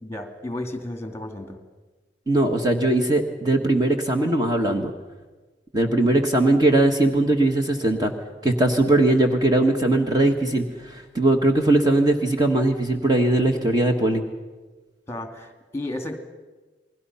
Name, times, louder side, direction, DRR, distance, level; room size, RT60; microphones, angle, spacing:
voice 1, 0.0-1.6 15.1-16.2, left 1 dB, 15° left, 6 dB, 2.4 m, -33 dB
voice 2, 2.3-4.9 5.7-8.1 8.4-14.2, right 2 dB, 20° right, 3 dB, 1.4 m, -20 dB
29.0 x 21.0 x 5.7 m, 1.3 s
head